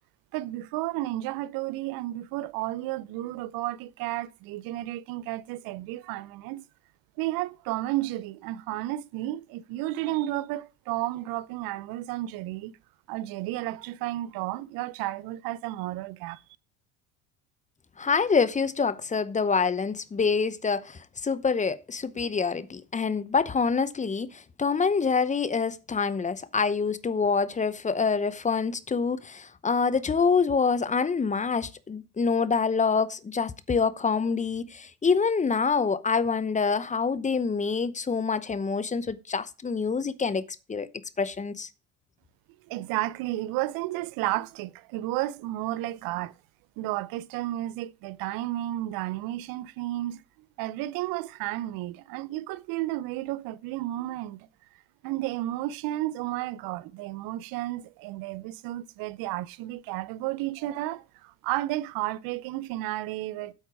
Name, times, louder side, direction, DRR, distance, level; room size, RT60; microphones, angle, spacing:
voice 1, 0.3-6.6 7.2-12.7 13.1-16.4 42.7-46.3 46.8-50.2 50.6-54.5 55.0-63.5, right 16 dB, 65° right, 0.8 m, -32 dB
voice 2, 18.0-40.9 41.2-41.7, left 5 dB, 20° left, 0.8 m, -26 dB
8.9 x 8.3 x 4.7 m
hypercardioid pair, 80°, 38 cm